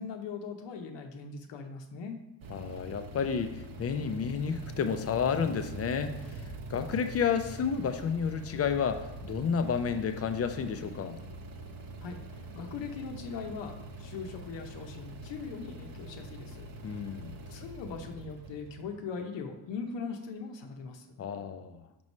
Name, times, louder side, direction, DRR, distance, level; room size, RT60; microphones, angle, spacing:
voice 1, 0.0-2.2 12.0-17.2 17.5-21.1, left 5 dB, 75° left, 4 dB, 0.8 m, -40 dB
sound 1, 2.4-19.6, right 2 dB, 50° right, 0.7 m, -44 dB
voice 2, 2.5-11.2 16.8-17.3 21.2-21.8, left 6 dB, 35° left, 9 dB, 0.4 m, -31 dB
6.1 x 3.1 x 5.3 m, 0.94 s
cardioid pair, 130°, 43 cm